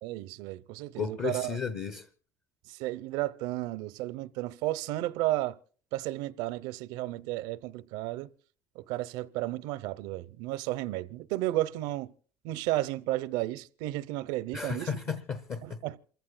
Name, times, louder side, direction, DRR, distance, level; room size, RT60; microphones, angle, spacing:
voice 1, 0.0-1.6 2.7-5.6 5.9-8.3 8.7-12.1 12.4-14.9 15.6-16.0, right 16 dB, 80° right, 0.7 m, -33 dB
voice 2, 1.0-2.1 14.5-15.8, left 6 dB, 35° left, 0.8 m, -34 dB
28.0 x 15.0 x 2.2 m
cardioid pair, 165°, 7 cm